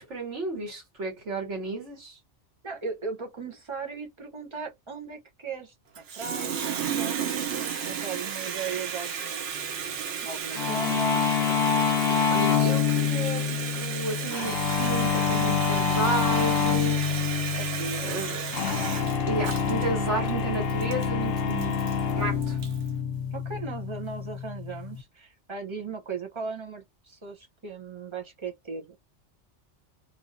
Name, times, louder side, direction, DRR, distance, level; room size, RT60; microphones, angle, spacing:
voice 1, 0.0-2.2 12.3-17.2 18.0-18.4 19.3-21.8 22.1-22.6, right 2 dB, 85° right, 2.0 m, -32 dB
voice 2, 2.6-9.5 10.2-11.7 17.6-18.1 23.3-29.0, right 5 dB, 30° right, 0.7 m, -38 dB
Water tap faucet, 5.9-22.9, right 7 dB, 65° right, 0.9 m, -33 dB
sound 1, 10.6-25.0, left 6 dB, 65° left, 0.7 m, -27 dB
3.1 x 2.6 x 2.5 m
omnidirectional pair, 1.2 m